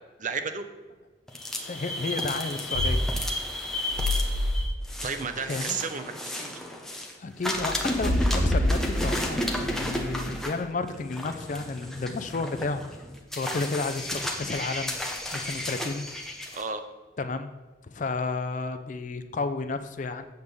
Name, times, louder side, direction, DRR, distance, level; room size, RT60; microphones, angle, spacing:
voice 1, 0.2-0.7 5.0-6.5 16.5-16.8, right 5 dB, 40° right, 9 dB, 0.6 m, -32 dB
sound 1, 1.3-7.1 7.4-16.6, left 1 dB, ahead, 0.7 m, -33 dB
voice 2, 1.6-3.0 5.5-5.8 7.2-12.8 13.4-16.1 17.2-17.5 17.9-20.2, left 3 dB, 40° left, 9 dB, 0.4 m, -32 dB
sound 2, 2.7-3.3 3.9-4.6 7.5-10.1, left 1 dB, 60° right, 0.9 m, -27 dB
7.9 x 3.6 x 6.6 m, 1.3 s
head